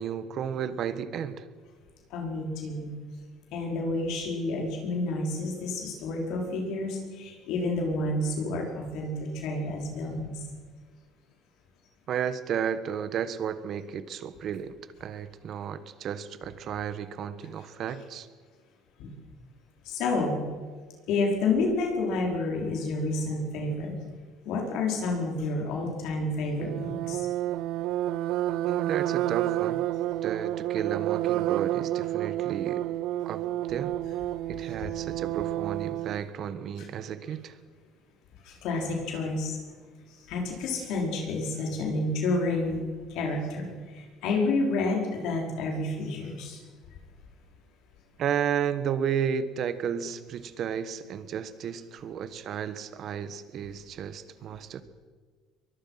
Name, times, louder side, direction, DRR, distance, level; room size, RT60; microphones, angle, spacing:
voice 1, 0.0-1.5 12.1-18.3 28.6-29.9 30.2-32.9 33.2-34.0 34.5-37.6 48.2-54.8, right 8 dB, 50° right, 13 dB, 1.4 m, -33 dB
voice 2, 2.1-2.9 3.5-10.3 19.0-19.1 19.8-20.4 21.1-23.9 24.4-27.2 38.4-39.6 40.3-42.8 43.1-46.6, left 2 dB, 70° left, 0 dB, 5.1 m, -29 dB
sound 1, 26.6-36.2, right 14 dB, 70° right, 0.5 m, -30 dB
23.0 x 21.5 x 5.8 m, 1.5 s
cardioid pair, 130°, 0 cm